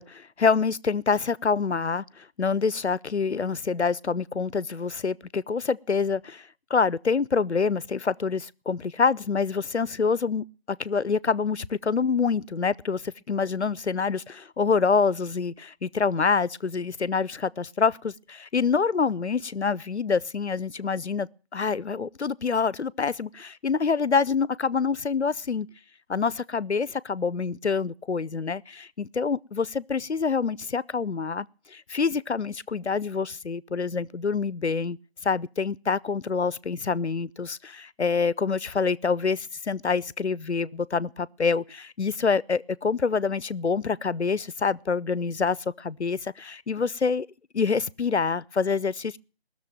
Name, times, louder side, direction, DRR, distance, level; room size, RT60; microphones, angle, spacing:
voice 1, 0.0-25.7 26.1-35.0 35.2-47.3 47.5-49.2, left 5 dB, 85° left, 0.7 m, -26 dB
19.0 x 6.8 x 8.9 m
figure-of-eight pair, 170°, 33 cm